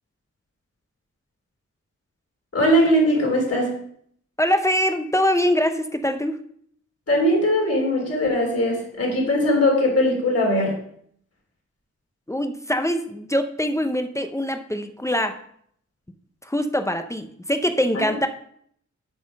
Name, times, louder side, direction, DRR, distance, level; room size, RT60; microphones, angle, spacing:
voice 1, 2.5-3.7 7.1-10.8 17.9-18.2, equal, 50° left, -1 dB, 3.5 m, -20 dB
voice 2, 4.4-6.4 12.3-15.4 16.4-18.3, equal, 10° left, 7 dB, 0.7 m, -23 dB
8.0 x 5.5 x 5.3 m, 0.66 s
wide cardioid pair, 85°, 30 cm